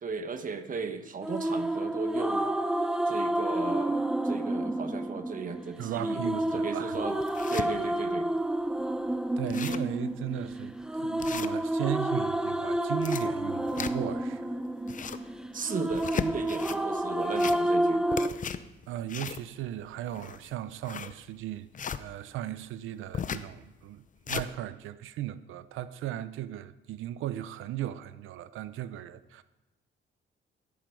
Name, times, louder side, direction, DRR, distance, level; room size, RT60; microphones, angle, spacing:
voice 1, 0.0-2.4 3.1-6.2 6.5-7.2 7.5-8.3 15.5-18.4, right 5 dB, 45° right, 1.4 m, -36 dB
sound 1, 1.2-18.3, right 1 dB, 5° right, 0.8 m, -30 dB
voice 2, 5.8-7.0 9.4-14.5 18.9-21.7 22.0-29.4, right 12 dB, 85° right, 0.7 m, -37 dB
sound 2, 6.3-6.4 6.9-7.7 8.2-8.3 8.6-8.7 9.1-9.2 9.4-10.0 10.4-10.5 11.2-12.0 12.8-14.2 14.7-15.3 15.8-16.8 17.2-17.8 18.1-22.0 23.1-23.5 23.9-24.5, left 7 dB, 40° left, 0.7 m, -36 dB
13.5 x 11.0 x 5.2 m
cardioid pair, 90°, 20 cm